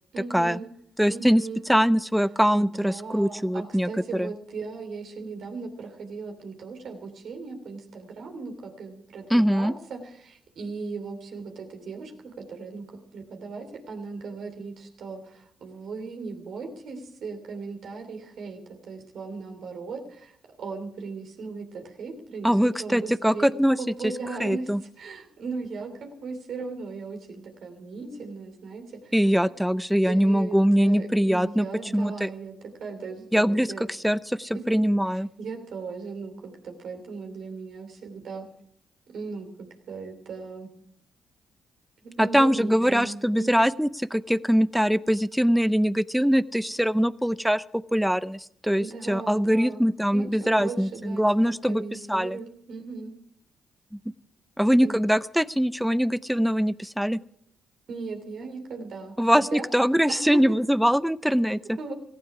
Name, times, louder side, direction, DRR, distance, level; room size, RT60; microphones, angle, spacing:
voice 1, 0.1-0.7 1.1-1.6 2.5-12.1 12.4-29.1 30.0-33.8 34.5-34.7 35.1-38.5 39.1-40.7 42.0-43.7 48.8-49.8 50.1-53.1 54.8-55.0 57.9-59.6 60.1-60.4 61.6-61.9, right 4 dB, 65° right, 4 dB, 3.0 m, -38 dB
voice 2, 1.0-1.4 1.7-3.9 4.2-4.3 9.3-9.7 22.4-23.8 24.0-24.1 24.4-24.8 29.1-31.7 31.9-32.3 33.3-33.7 34.0-35.3 42.2-51.8 52.1-52.4 54.6-57.2 59.2-61.8, equal, ahead, 18 dB, 0.6 m, -22 dB
17.5 x 15.5 x 4.8 m, 0.68 s
hypercardioid pair, 45°, 0 cm